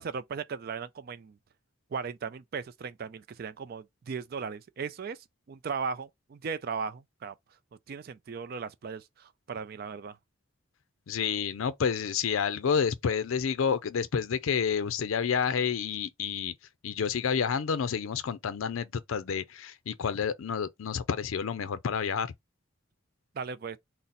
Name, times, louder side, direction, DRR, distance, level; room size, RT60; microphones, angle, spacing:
voice 1, 0.0-1.4 1.9-5.2 5.5-7.3 7.9-10.2 23.3-23.8, right 5 dB, 45° right, 0.3 m, -37 dB
voice 2, 11.1-16.5 16.8-22.3, left 6 dB, 75° left, 0.4 m, -29 dB
3.8 x 2.0 x 4.1 m
head